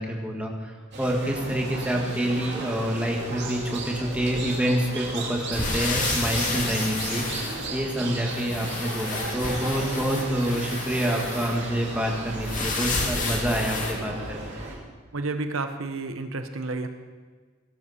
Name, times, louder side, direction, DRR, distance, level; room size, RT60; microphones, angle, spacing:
voice 1, 0.0-14.4, equal, 5° right, 0 dB, 1.8 m, -27 dB
sound 1, 0.9-14.7, right 2 dB, 55° right, 3.1 m, -35 dB
sound 2, 5.5-8.0 8.3-11.6 12.4-13.9, left 3 dB, 40° left, 2.3 m, -30 dB
voice 2, 15.1-16.9, right 3 dB, 75° right, 8 dB, 0.9 m, -30 dB
17.5 x 12.5 x 4.2 m, 1.5 s
head